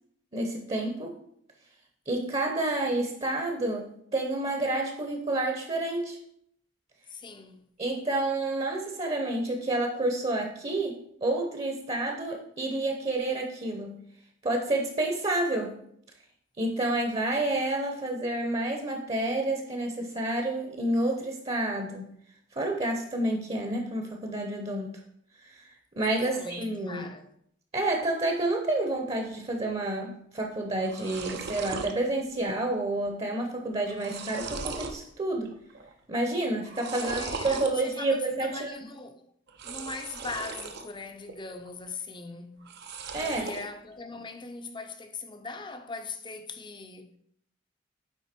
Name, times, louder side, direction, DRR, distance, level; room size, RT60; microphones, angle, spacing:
voice 1, 0.3-1.1 2.1-6.2 7.8-14.0 14.4-15.8 16.6-22.1 22.5-25.0 25.5-25.7 26.0-27.1 27.7-35.5 36.1-38.7 43.1-43.5, right 2 dB, 30° right, 0.9 m, -29 dB
voice 2, 7.1-7.6 26.2-27.3 36.9-39.2 39.6-42.7 43.2-47.1, left 3 dB, 25° left, 0.7 m, -40 dB
sound 1, 30.4-30.5 30.7-31.9 32.4-32.8 33.0-33.1 33.7-35.0 35.4-35.9 36.6-37.7 39.5-40.9 41.3-41.9 42.6-43.7, right 4 dB, 60° right, 0.7 m, -38 dB
9.1 x 4.0 x 4.4 m
head